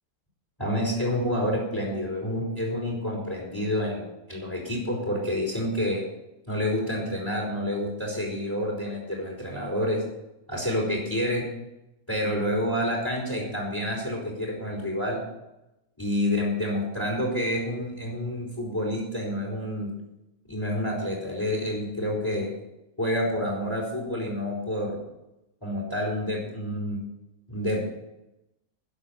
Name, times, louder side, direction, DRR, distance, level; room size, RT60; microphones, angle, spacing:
voice 1, 0.6-6.0 6.5-10.0 10.5-11.5 12.1-15.2 16.0-19.9 20.5-22.5 23.0-25.0 25.6-27.0 27.5-27.8, left 1 dB, 15° left, -3 dB, 3.7 m, -28 dB
12.0 x 7.7 x 8.5 m, 0.93 s
omnidirectional pair, 1.6 m